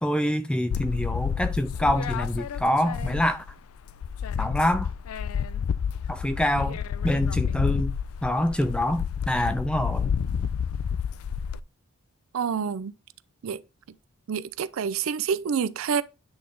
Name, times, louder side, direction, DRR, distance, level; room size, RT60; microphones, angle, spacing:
voice 1, 0.0-3.4 4.4-4.9 6.1-6.8 7.0-7.9 8.2-10.1, equal, 5° left, 0.3 m, -25 dB
sound 1, 0.7-3.6 3.9-11.6, left 7 dB, 80° left, 0.4 m, -29 dB
voice 2, 12.3-12.9 13.4-13.6 14.3-16.0, right 6 dB, 70° right, 0.4 m, -27 dB
8.8 x 3.8 x 3.5 m
head